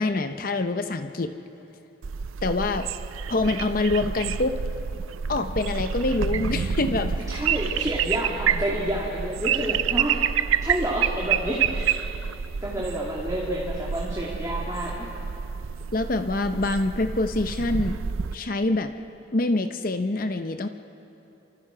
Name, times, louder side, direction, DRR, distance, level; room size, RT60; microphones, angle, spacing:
voice 1, 0.0-1.3 2.4-2.9 3.3-4.6 5.3-7.2 15.9-18.0 18.3-18.9 19.3-20.7, left 2 dB, 45° left, 8 dB, 0.7 m, -25 dB
sound 1, 2.0-18.3, right 7 dB, 90° right, 0.5 m, -28 dB
voice 2, 7.3-10.2 10.6-12.0 12.6-15.1, right 1 dB, 20° right, -5 dB, 2.3 m, -29 dB
29.0 x 25.5 x 5.0 m, 2.9 s
head